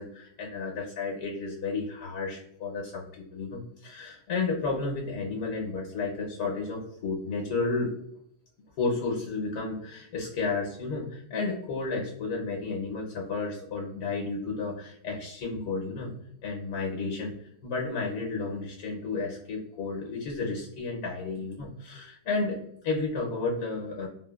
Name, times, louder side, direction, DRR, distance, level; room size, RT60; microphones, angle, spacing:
voice 1, 0.0-7.9 8.8-16.1 16.4-24.1, left 3 dB, 80° left, -1 dB, 1.1 m, -32 dB
3.3 x 2.0 x 2.2 m, 0.72 s
omnidirectional pair, 1.5 m